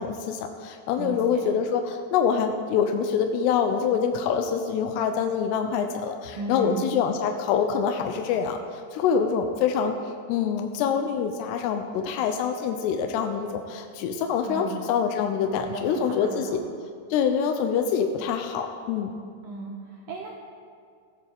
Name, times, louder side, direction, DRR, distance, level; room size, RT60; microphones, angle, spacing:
voice 1, 0.0-8.6 8.9-9.9 10.3-16.6 17.1-19.1, left 7 dB, 80° left, 5 dB, 2.6 m, -25 dB
voice 2, 1.0-1.5 6.3-6.9 14.4-14.8 15.6-16.6 19.4-20.3, right 3 dB, 90° right, -2 dB, 1.9 m, -35 dB
15.5 x 8.9 x 3.5 m, 2.2 s
omnidirectional pair, 4.9 m